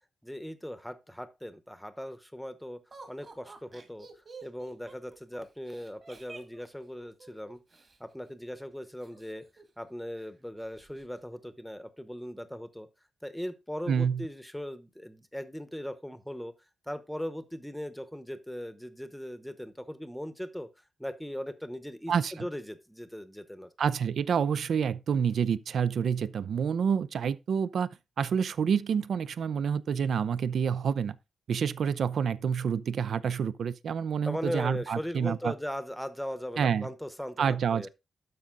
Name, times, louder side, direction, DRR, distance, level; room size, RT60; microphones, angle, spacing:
voice 1, 0.2-2.8 3.1-4.1 4.4-7.6 8.0-9.4 9.8-12.9 13.2-16.5 16.9-20.7 21.0-23.7 34.2-37.9, equal, ahead, 0.9 m, -39 dB
Laughter, 2.9-8.0 9.0-9.9 10.2-10.3 10.6-11.1, right 4 dB, 30° right, 2.0 m, -50 dB
voice 2, 13.9-14.3 22.1-22.3 23.8-27.9 28.2-31.2 31.5-35.5 36.6-36.9 37.4-37.9, right 7 dB, 60° right, 0.5 m, -28 dB
12.0 x 5.3 x 3.8 m
wide cardioid pair, 155°, 0 cm